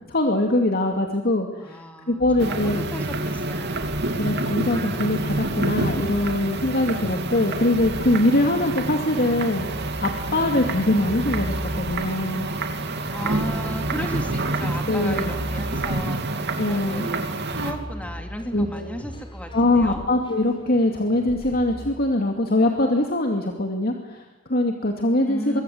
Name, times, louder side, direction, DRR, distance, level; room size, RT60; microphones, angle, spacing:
voice 1, 0.1-2.8 4.2-9.7 10.0-12.5 14.9-15.3 16.6-17.1 18.5-18.9 19.5-25.6, left 1 dB, 50° left, 3 dB, 2.6 m, -22 dB
voice 2, 1.6-4.2 13.1-20.0 25.2-25.6, equal, 5° left, 5 dB, 2.9 m, -36 dB
sound 1, 2.2-21.9, equal, 25° left, 4.0 m, -38 dB
sound 2, 2.4-17.7, right 2 dB, 55° right, 2.9 m, -28 dB
24.5 x 23.5 x 8.0 m, 1.0 s
head